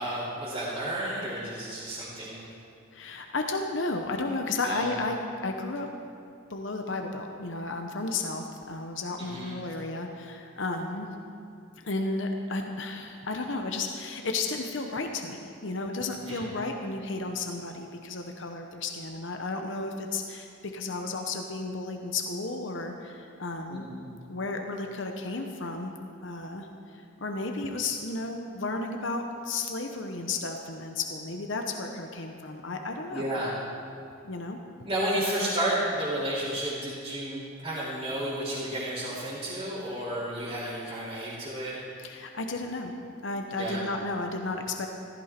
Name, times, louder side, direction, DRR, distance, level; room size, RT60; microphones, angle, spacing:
voice 1, 0.0-2.5 4.6-4.9 9.2-9.5 16.1-16.4 23.7-24.1 33.1-33.5 34.8-41.7 43.6-43.8, right 1 dB, 25° right, -12 dB, 3.0 m, -32 dB
voice 2, 2.9-5.2 5.4-5.9 6.5-11.1 11.8-23.8 24.3-25.9 26.2-33.3 34.2-34.6 42.0-42.9 43.2-44.9, left 3 dB, 65° left, 4 dB, 1.0 m, -33 dB
15.0 x 14.5 x 4.4 m, 2.5 s
head